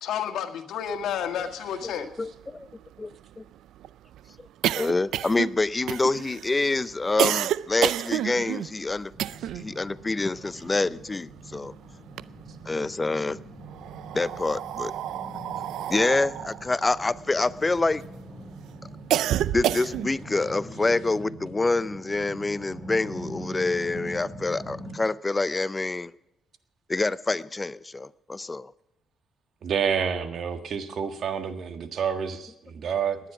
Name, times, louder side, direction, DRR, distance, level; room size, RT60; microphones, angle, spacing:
voice 1, 0.0-2.1, left 8 dB, 80° left, 6 dB, 1.8 m, -30 dB
sound 1, 1.5-1.6 1.8-1.9 2.2-9.7 10.0-11.6 11.9-12.9 13.6-18.1 18.5-20.2, right 12 dB, 80° right, 0.4 m, -29 dB
voice 2, 1.9-2.7 3.0-3.4 4.8-9.1 9.5-11.7 12.6-13.4 14.1-14.9 15.9-18.0 19.5-26.1 26.9-28.7, left 3 dB, 20° left, 18 dB, 0.5 m, -26 dB
sound 2, 9.1-24.9, right 1 dB, 10° right, 4.9 m, -43 dB
voice 3, 29.6-33.2, right 7 dB, 60° right, 8 dB, 1.6 m, -28 dB
19.5 x 10.0 x 6.0 m, 0.89 s
cardioid pair, 90°, 0 cm